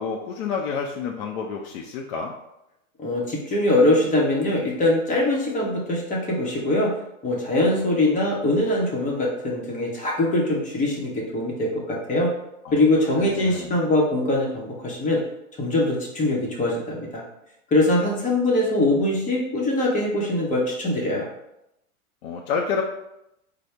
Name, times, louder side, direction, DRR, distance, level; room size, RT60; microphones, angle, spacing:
voice 1, 0.0-2.3 12.6-12.8 13.2-13.7 22.2-22.8, left 6 dB, 50° left, 0 dB, 0.5 m, -29 dB
voice 2, 3.0-6.9 7.2-12.3 12.7-15.2 15.6-17.2 17.7-21.3, left 1 dB, 20° left, -3 dB, 0.8 m, -22 dB
4.2 x 2.0 x 3.2 m, 0.85 s
hypercardioid pair, 130°, 42 cm